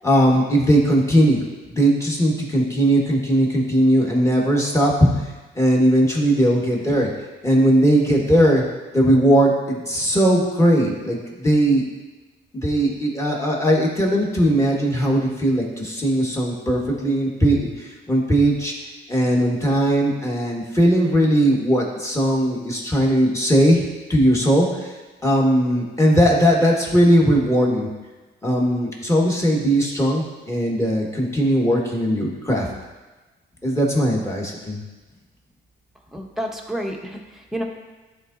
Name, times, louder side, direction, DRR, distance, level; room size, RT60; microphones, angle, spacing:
voice 1, 0.0-1.4 1.7-5.1 5.5-7.1 7.4-8.6 8.9-11.8 12.5-18.7 19.1-23.8 24.1-24.9 25.2-27.9 28.4-32.7 33.6-34.8, equal, 15° left, -3 dB, 1.6 m, -19 dB
voice 2, 36.1-37.6, equal, ahead, 1 dB, 0.9 m, -30 dB
11.0 x 3.9 x 2.7 m, 1.2 s
cardioid pair, 90°, 20 cm